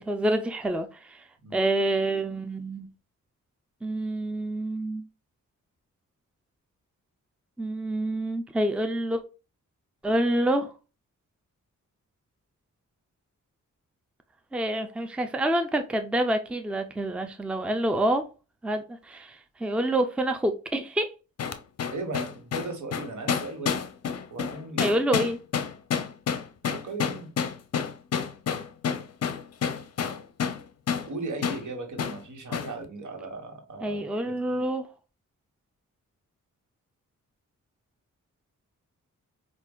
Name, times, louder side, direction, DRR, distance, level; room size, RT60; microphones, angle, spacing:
voice 1, 0.0-1.2 1.5-2.9 3.8-5.0 7.6-9.2 10.0-10.7 14.5-18.3 18.6-21.1 24.8-25.4 33.8-34.9, right 1 dB, 5° right, 0.5 m, -27 dB
sound 1, 21.4-30.6 30.9-31.1 31.4-31.6 32.0-32.2 32.5-32.7, left 7 dB, 50° left, 0.6 m, -29 dB
voice 2, 21.9-23.9 24.3-25.0 26.6-27.3 31.0-34.6, right 3 dB, 65° right, 1.4 m, -37 dB
4.8 x 2.5 x 2.3 m
cardioid pair, 60°, 32 cm